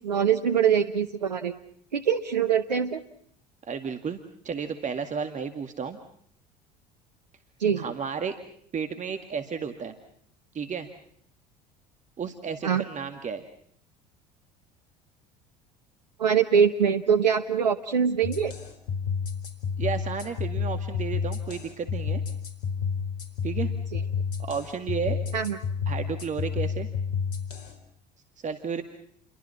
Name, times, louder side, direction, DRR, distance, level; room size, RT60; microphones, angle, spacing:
voice 1, 0.0-1.5 1.9-3.0 7.6-7.8 12.6-12.8 16.2-18.5 25.3-25.6, right 7 dB, 85° right, 8 dB, 0.9 m, -23 dB
voice 2, 3.6-4.2 4.4-6.0 7.8-8.4 8.7-9.9 10.5-10.9 12.2-13.4 19.8-22.2 23.4-23.7 24.4-25.2 25.9-26.9 28.4-28.8, right 6 dB, 35° right, 7 dB, 2.2 m, -32 dB
sound 1, 18.2-27.7, left 6 dB, 70° left, 4.2 m, -30 dB
30.0 x 23.5 x 5.8 m, 0.65 s
figure-of-eight pair, 65°, 21 cm